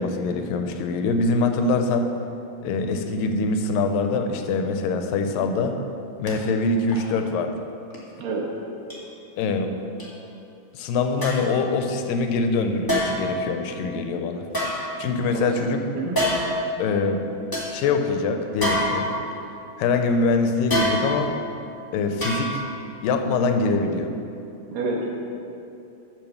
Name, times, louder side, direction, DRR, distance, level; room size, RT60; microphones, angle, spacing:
voice 1, 0.0-2.1 2.6-5.8 6.2-7.5 9.4-9.7 10.7-14.4 15.0-15.8 16.8-17.2 17.7-19.1 19.8-21.3 21.9-22.6 23.0-24.1, left 3 dB, 85° left, 6 dB, 2.4 m, -24 dB
sound 1, 6.3-6.4 6.9-7.1 7.9-8.0 8.9-9.0 10.0-10.1 11.2-11.6 12.9-13.4 14.5-15.4 16.1-16.6 17.1-17.2 17.5-17.7 18.6-19.4 20.7-21.4 22.2-22.8 23.1-23.2, left 1 dB, 15° left, 0.8 m, -26 dB
voice 2, 24.7-25.1, right 3 dB, 80° right, -3 dB, 3.2 m, -28 dB
8.7 x 6.7 x 7.1 m, 2.8 s
omnidirectional pair, 3.9 m